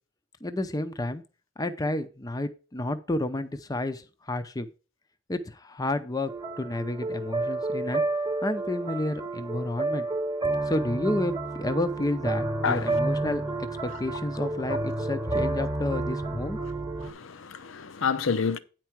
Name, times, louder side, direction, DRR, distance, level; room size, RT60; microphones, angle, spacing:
voice 1, 0.4-1.2 1.6-4.7 5.3-6.3 6.6-8.0 8.4-10.1 10.7-13.4 13.8-16.6, left 1 dB, 20° left, 0.5 m, -30 dB
sound 1, 6.3-17.1, right 2 dB, 20° right, 1.0 m, -30 dB
voice 2, 17.0-18.6, left 5 dB, 70° left, 0.7 m, -28 dB
9.3 x 4.6 x 5.9 m
head